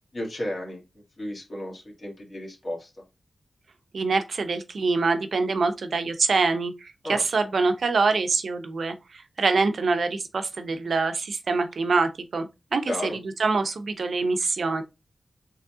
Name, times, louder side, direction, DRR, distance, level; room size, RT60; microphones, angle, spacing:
voice 1, 0.1-0.8 1.2-2.9 7.0-7.2 12.9-13.2, left 1 dB, 40° left, 1.6 m, -33 dB
voice 2, 3.9-13.1 13.4-14.8, right 4 dB, 70° right, 0.6 m, -25 dB
3.8 x 3.1 x 3.6 m
wide cardioid pair, 125°, 0 cm